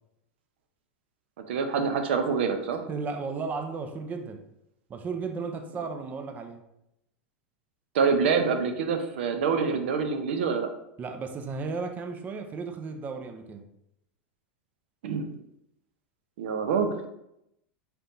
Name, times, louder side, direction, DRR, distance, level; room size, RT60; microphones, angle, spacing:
voice 1, 1.5-2.8 7.9-10.7 15.0-15.3 16.4-16.9, right 5 dB, 75° right, 6 dB, 0.7 m, -26 dB
voice 2, 2.9-4.4 4.9-6.6 11.0-13.7, right 4 dB, 25° right, 6 dB, 0.5 m, -34 dB
4.4 x 3.4 x 2.6 m, 0.81 s
hypercardioid pair, 105°, 6 cm